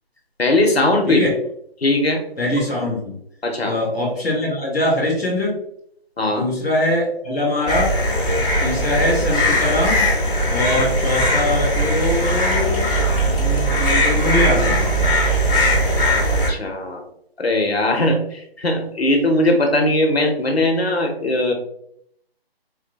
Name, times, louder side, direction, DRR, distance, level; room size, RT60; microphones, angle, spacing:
voice 1, 0.4-1.3 1.8-2.2 3.4-3.7 6.2-6.5 10.8-10.9 16.3-17.0 17.4-21.5, left 1 dB, 85° left, 3 dB, 1.0 m, -19 dB
voice 2, 2.4-3.2 3.6-5.6 6.3-7.9 8.6-10.1 10.5-14.8, left 1 dB, 5° left, -15 dB, 0.5 m, -22 dB
sound 1, 7.7-16.5, equal, 60° left, 1.4 m, -19 dB
4.3 x 2.7 x 2.2 m, 0.70 s
figure-of-eight pair, 150°, 30 cm